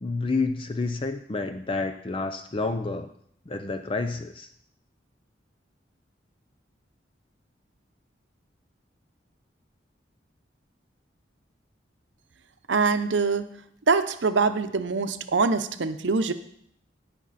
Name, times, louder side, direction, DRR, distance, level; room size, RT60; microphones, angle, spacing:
voice 1, 0.0-3.1 3.5-4.5, left 3 dB, 30° left, 8 dB, 0.5 m, -29 dB
voice 2, 12.7-13.4 13.9-16.3, right 4 dB, 75° right, 9 dB, 0.7 m, -24 dB
18.0 x 6.0 x 4.1 m, 0.66 s
head